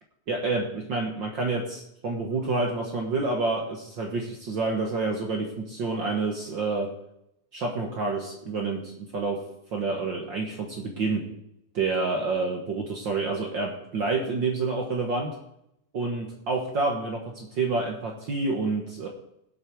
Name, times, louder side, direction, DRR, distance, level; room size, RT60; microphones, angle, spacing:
voice 1, 0.3-6.9 7.5-9.4 9.7-11.3 11.7-15.3 15.9-19.1, right 3 dB, 55° right, 1 dB, 1.4 m, -28 dB
17.0 x 8.2 x 4.6 m, 0.82 s
omnidirectional pair, 3.6 m